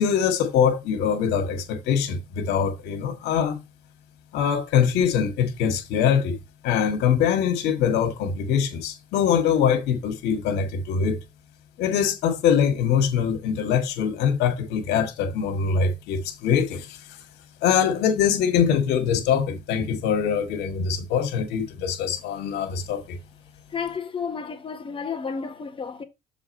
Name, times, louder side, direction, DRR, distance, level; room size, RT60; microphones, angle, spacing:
voice 1, 0.0-3.6 4.3-6.4 6.6-11.2 11.8-17.2 17.6-23.2, left 7 dB, 85° left, 1.8 m, -23 dB
voice 2, 23.7-26.0, left 6 dB, 30° left, 1.5 m, -31 dB
7.2 x 3.7 x 5.4 m
cardioid pair, 110°, 17 cm